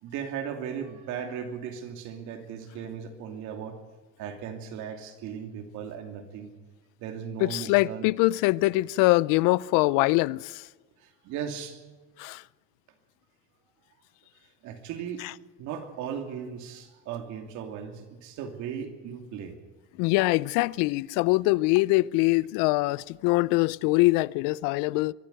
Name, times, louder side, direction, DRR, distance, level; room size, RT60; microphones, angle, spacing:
voice 1, 0.0-3.8 4.2-6.5 7.0-8.1 11.0-11.8 14.6-15.2 15.6-19.6, right 8 dB, 65° right, 2.8 m, -37 dB
voice 2, 7.4-10.6 12.2-12.4 20.0-25.1, left 21 dB, 80° left, 0.5 m, -23 dB
23.0 x 12.0 x 9.2 m
cardioid pair, 160°, 32 cm